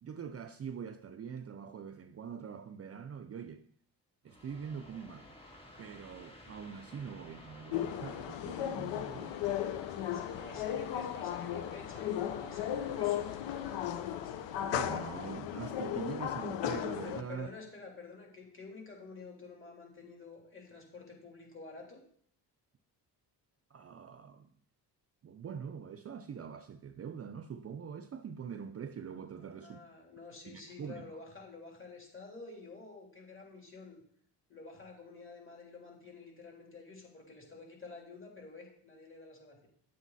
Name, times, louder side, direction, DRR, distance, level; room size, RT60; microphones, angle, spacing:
voice 1, 0.0-3.6 4.2-5.3 5.8-9.5 14.6-17.5 23.7-24.5 25.2-29.8 30.5-31.2, right 7 dB, 35° right, 0.5 m, -44 dB
sound 1, 4.2-17.6, left 1 dB, 15° left, 2.5 m, -55 dB
sound 2, 7.7-17.2, left 10 dB, 90° left, 0.9 m, -36 dB
voice 2, 10.0-13.3 17.0-22.0 29.4-34.0 34.5-39.7, left 4 dB, 30° left, 3.6 m, -50 dB
10.0 x 8.2 x 4.1 m
cardioid pair, 100°, 42 cm